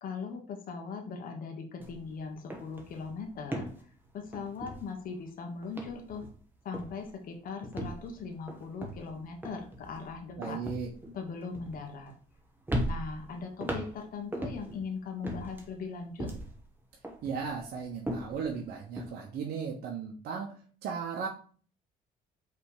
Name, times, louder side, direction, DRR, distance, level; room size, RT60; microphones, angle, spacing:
voice 1, 0.0-3.7 4.1-6.3 6.6-10.7 11.1-12.1 12.8-16.3, left 5 dB, 55° left, 3 dB, 1.4 m, -39 dB
sound 1, 1.8-2.0 2.3-5.3 5.6-6.5 6.7-7.1 7.6-12.3 12.7-14.8 15.2-16.7 17.0-19.1, right 1 dB, 10° right, 1.4 m, -38 dB
voice 2, 10.4-10.9 17.2-21.3, right 6 dB, 70° right, 0 dB, 1.1 m, -36 dB
5.8 x 3.4 x 5.0 m, 0.42 s
cardioid pair, 110°, 17 cm